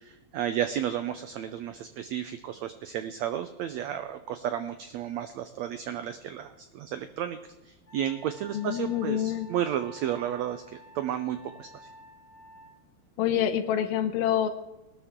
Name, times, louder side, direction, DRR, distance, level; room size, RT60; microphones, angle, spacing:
voice 1, 0.0-7.4 7.6-10.6 10.9-11.9, right 10 dB, 85° right, 10 dB, 1.5 m, -32 dB
Wind instrument woodwind instrument, 7.9-12.7, equal, 35° left, 3.9 m, -51 dB
voice 2, 8.5-9.5 13.2-14.5, left 10 dB, 85° left, 7 dB, 2.7 m, -26 dB
20.0 x 12.5 x 3.7 m, 1.0 s
omnidirectional pair, 4.0 m